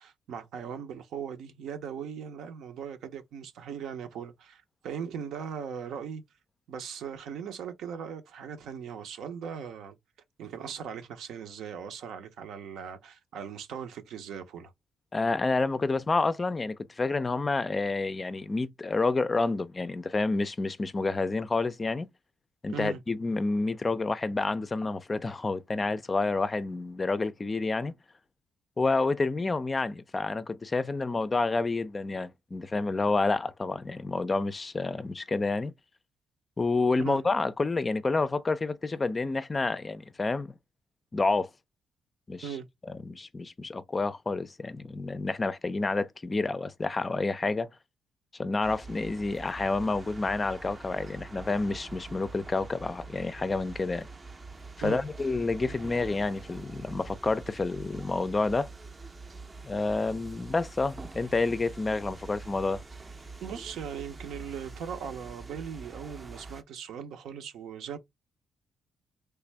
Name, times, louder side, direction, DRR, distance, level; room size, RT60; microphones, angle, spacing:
voice 1, 0.0-6.2 6.7-10.0 10.4-14.7 22.7-23.0 37.1-37.2 42.4-42.7 54.8-55.0 63.4-68.0, right 7 dB, 80° right, 0.7 m, -39 dB
voice 2, 15.1-22.1 22.6-27.9 28.8-35.7 36.6-40.5 41.1-41.5 42.3-42.5 42.9-47.7 48.4-54.1 54.8-58.7 59.6-62.8, left 3 dB, 25° left, 0.4 m, -29 dB
sound 1, 48.6-66.6, right 3 dB, 25° right, 0.5 m, -45 dB
3.3 x 2.5 x 3.3 m
cardioid pair, 90°, 0 cm